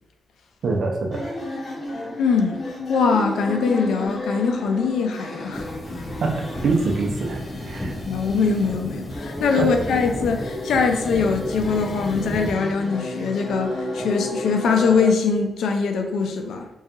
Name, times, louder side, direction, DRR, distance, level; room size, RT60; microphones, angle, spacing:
voice 1, 0.6-1.3 6.2-7.9 9.6-9.7, right 3 dB, 70° right, 0.5 m, -24 dB
sound 1, 1.1-15.1, left 1 dB, 60° left, 0.8 m, -32 dB
voice 2, 2.2-2.6 2.9-5.7 8.0-16.7, left 5 dB, 90° left, 0.3 m, -22 dB
sound 2, 5.5-12.5, left 1 dB, 20° left, 0.5 m, -34 dB
2.7 x 2.3 x 2.4 m
cardioid pair, 75°, 0 cm